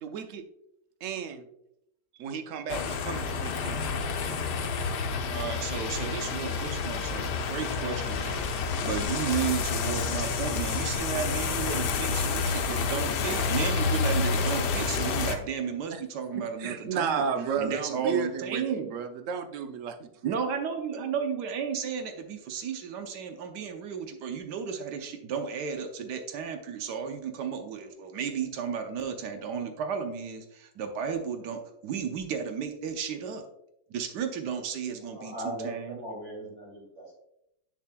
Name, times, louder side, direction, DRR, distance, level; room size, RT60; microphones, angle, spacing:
voice 1, 0.0-0.4 1.0-1.4 2.2-3.8 15.9-16.0 16.3-20.3, right 6 dB, 60° right, 7 dB, 0.9 m, -33 dB
sound 1, 2.7-15.4, left 4 dB, 80° left, 1.3 m, -29 dB
voice 2, 5.3-8.5 8.8-17.2 17.6-18.9 20.2-33.4 33.9-36.0, right 7 dB, 90° right, 5 dB, 1.4 m, -33 dB
voice 3, 35.0-37.1, right 1 dB, 40° right, -3 dB, 3.1 m, -39 dB
7.6 x 6.9 x 2.2 m, 0.80 s
omnidirectional pair, 1.8 m